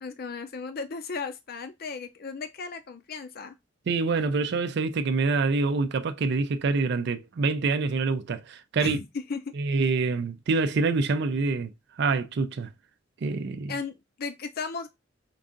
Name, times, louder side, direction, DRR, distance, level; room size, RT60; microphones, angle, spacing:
voice 1, 0.0-3.5 8.8-9.5 13.7-14.9, left 4 dB, 50° left, 0.6 m, -35 dB
voice 2, 3.9-9.0 9.6-11.7 12.0-12.7 13.2-13.7, right 4 dB, 60° right, 0.4 m, -26 dB
4.6 x 2.5 x 3.7 m
head